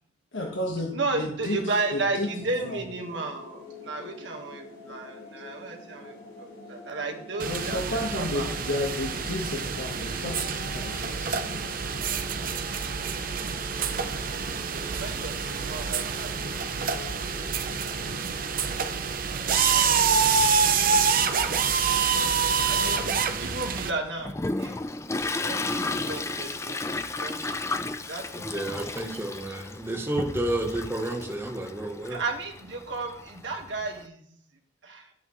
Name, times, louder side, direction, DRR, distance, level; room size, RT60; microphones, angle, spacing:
voice 1, 0.3-2.3 2.7-2.8 7.4-11.6 12.9-13.0 20.0-20.5 22.7-23.4, left 1 dB, 75° left, 0 dB, 1.4 m, -33 dB
voice 2, 0.9-8.5 13.9-16.3 16.6-16.7 22.6-24.8 25.4-27.6 28.1-29.3 32.1-34.2 34.8-35.1, right 3 dB, 70° right, 3 dB, 1.6 m, -34 dB
sound 1, 1.6-19.1, left 2 dB, 55° left, 4.7 m, -46 dB
sound 2, 7.4-23.9, right 6 dB, 45° right, 0.7 m, -27 dB
Toilet flush, 23.8-34.0, left 2 dB, 15° left, 0.4 m, -33 dB
voice 3, 28.4-32.2, right 1 dB, 15° right, 2 dB, 1.1 m, -31 dB
12.0 x 8.1 x 3.2 m, 0.68 s
head